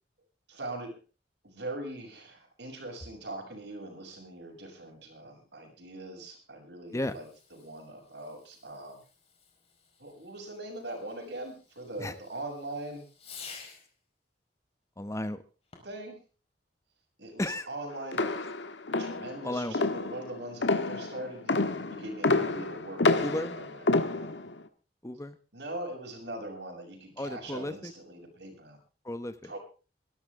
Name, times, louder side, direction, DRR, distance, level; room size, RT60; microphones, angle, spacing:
voice 1, 0.5-1.0 1.4-7.3 7.5-9.0 10.0-13.0 15.8-16.2 17.2-18.5 19.0-21.6 21.9-23.9 24.1-24.4 25.5-28.8 29.4-29.6, right 1 dB, 75° right, 2 dB, 7.3 m, -41 dB
Fireworks, 6.9-14.0 15.6-16.1, left 5 dB, 35° left, 4.9 m, -52 dB
voice 2, 15.0-15.4 17.4-17.7 19.4-19.8 23.2-23.6 25.0-25.4 27.2-27.9 29.0-29.5, left 1 dB, 15° left, 12 dB, 0.9 m, -34 dB
sound 1, 18.1-24.6, left 3 dB, 90° left, 1.5 m, -28 dB
23.0 x 13.0 x 3.7 m, 0.34 s
head